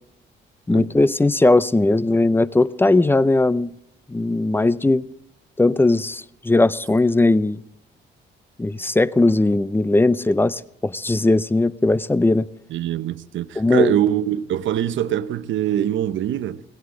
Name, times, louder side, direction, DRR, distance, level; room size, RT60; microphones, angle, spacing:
voice 1, 0.7-3.7 4.1-5.1 5.6-7.6 8.6-12.5 13.6-13.9, left 2 dB, 10° left, 0.5 m, -18 dB
voice 2, 12.7-16.6, right 11 dB, 75° right, 0.8 m, -23 dB
16.5 x 16.5 x 3.8 m
cardioid pair, 90°, 20 cm